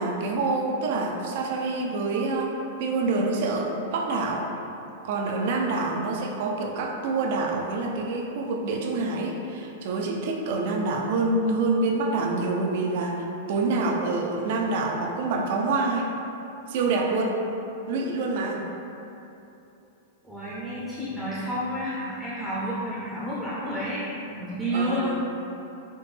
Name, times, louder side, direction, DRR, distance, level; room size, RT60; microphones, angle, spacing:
voice 1, 0.0-4.4 5.0-16.1 16.7-17.4 17.9-18.6 24.7-25.2, right 3 dB, 55° right, 1 dB, 0.4 m, -26 dB
voice 2, 20.2-25.1, equal, ahead, -9 dB, 0.5 m, -30 dB
4.1 x 2.1 x 3.4 m, 2.9 s
supercardioid pair, 150°, 0 cm